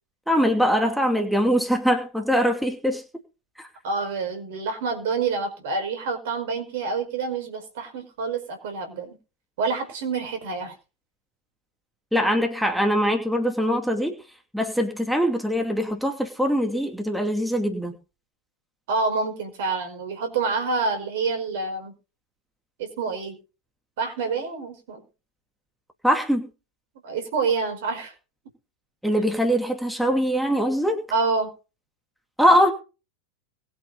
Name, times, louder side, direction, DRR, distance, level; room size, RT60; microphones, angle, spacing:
voice 1, 0.3-3.0 3.6-3.7 12.1-14.1 14.5-17.9 26.0-26.5 29.0-31.0 32.4-32.7, equal, ahead, 3 dB, 2.6 m, -22 dB
voice 2, 3.8-9.2 9.6-10.7 18.9-21.9 22.8-23.4 24.0-25.0 27.0-28.1 31.1-31.5, right 4 dB, 55° right, 7 dB, 5.0 m, -27 dB
21.0 x 8.7 x 4.0 m, 0.33 s
figure-of-eight pair, 90°, 0 cm